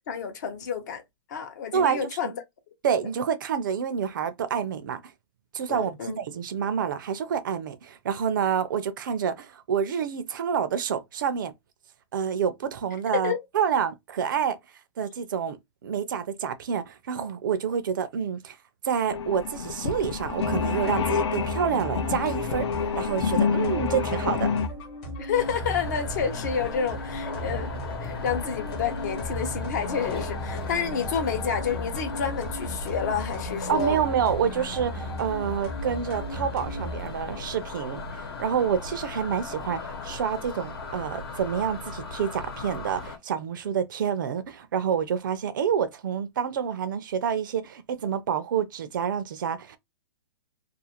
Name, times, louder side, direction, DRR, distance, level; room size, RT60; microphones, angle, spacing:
voice 1, 0.1-1.0 1.3-2.3 2.9-3.1 5.7-6.2 13.2-13.4 25.2-27.7 28.0-34.0, left 7 dB, 45° left, 0.6 m, -29 dB
voice 2, 1.7-2.2 2.8-5.0 5.5-11.5 12.1-14.6 15.0-15.6 15.8-18.6 18.8-22.7 23.0-24.5 33.7-49.8, right 7 dB, 50° right, 0.4 m, -28 dB
sound 1, 19.1-24.7, left 6 dB, 80° left, 0.5 m, -28 dB
sound 2, 20.4-37.0, right 1 dB, 25° left, 0.9 m, -36 dB
sound 3, 25.3-43.2, left 4 dB, 65° left, 1.0 m, -37 dB
2.4 x 2.4 x 2.8 m
hypercardioid pair, 170°, 14 cm